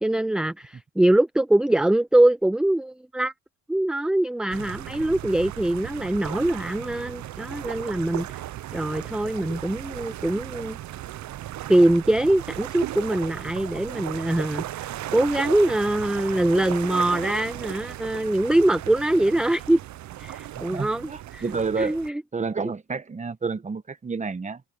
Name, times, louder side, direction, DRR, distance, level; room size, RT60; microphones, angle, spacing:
voice 1, 0.0-3.3 3.7-8.4 8.7-10.8 11.7-19.8 20.2-21.4 21.8-22.2, right 1 dB, ahead, 0.5 m, -23 dB
sound 1, 4.5-22.1, right 13 dB, 60° right, 0.8 m, -36 dB
voice 2, 20.5-22.0 22.3-24.6, right 4 dB, 20° right, 1.2 m, -30 dB
cardioid pair, 110°, 32 cm